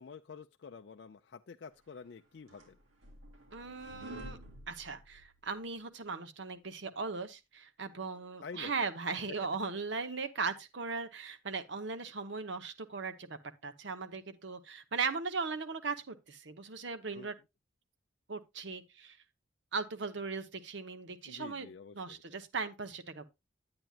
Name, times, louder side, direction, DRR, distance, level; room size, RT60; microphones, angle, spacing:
voice 1, 0.0-2.8 8.4-8.7 9.3-9.4 17.1-17.3 21.2-22.2, left 5 dB, 55° left, 0.4 m, -48 dB
sound 1, 2.0-5.7, right 1 dB, 85° right, 2.9 m, -50 dB
voice 2, 3.5-4.4 4.7-17.3 18.3-19.2 19.7-21.7 21.9-23.2, right 4 dB, 65° right, 0.9 m, -38 dB
10.5 x 8.8 x 2.4 m
head